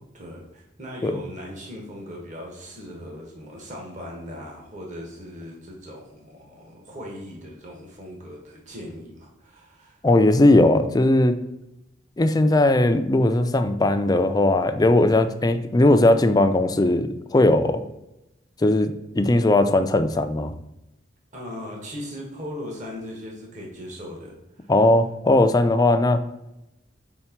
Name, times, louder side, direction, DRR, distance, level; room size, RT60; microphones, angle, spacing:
voice 1, 0.1-10.0 21.3-24.7, equal, 40° right, -1 dB, 1.4 m, -38 dB
voice 2, 10.0-11.4 12.2-17.8 18.6-20.5 24.7-26.2, left 2 dB, 20° left, 8 dB, 0.4 m, -18 dB
4.4 x 4.3 x 5.8 m, 0.92 s
head